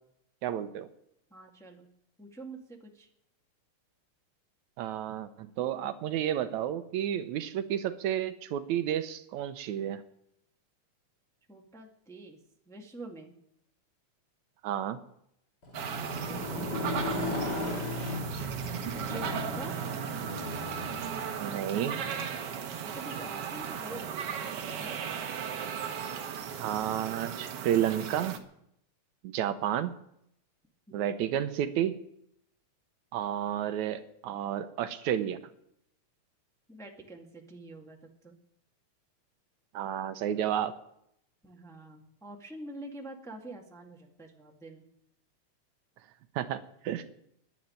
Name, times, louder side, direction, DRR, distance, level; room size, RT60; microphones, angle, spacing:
voice 1, 0.4-0.9 4.8-10.0 14.6-15.0 21.4-21.9 26.6-28.4 29.2-30.0 30.9-32.0 33.1-35.4 39.7-40.7 46.4-46.6 46.8-47.0, right 10 dB, 80° right, 10 dB, 2.1 m, -31 dB
voice 2, 1.3-1.9 2.2-3.1 11.5-12.4 12.6-13.3 16.0-18.0 19.0-19.8 22.9-25.0 30.9-31.1 36.7-38.4 41.4-44.8, right 2 dB, ahead, 0 dB, 1.4 m, -46 dB
Motorcycle, 15.6-23.7, left 1 dB, 35° left, 3.2 m, -37 dB
sound 1, 15.7-28.4, right 8 dB, 60° right, 1.9 m, -36 dB
10.5 x 10.5 x 9.5 m, 0.75 s
omnidirectional pair, 3.4 m